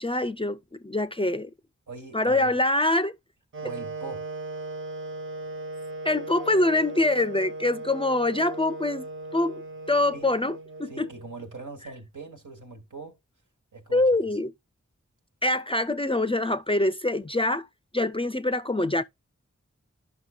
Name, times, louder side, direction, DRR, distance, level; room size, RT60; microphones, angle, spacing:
voice 1, 0.0-1.5 2.1-3.1 6.0-9.1 9.3-9.6 9.9-11.1 13.9-14.5 15.4-17.7 17.9-19.0, left 2 dB, 20° left, 0.4 m, -24 dB
voice 2, 1.9-2.6 3.6-4.3 10.1-10.3 10.9-13.2 13.7-14.0, right 3 dB, 85° right, 1.7 m, -41 dB
Wind instrument woodwind instrument, 3.5-11.5, right 2 dB, 45° right, 0.5 m, -37 dB
11.5 x 5.7 x 2.3 m
wide cardioid pair, 40°, 30 cm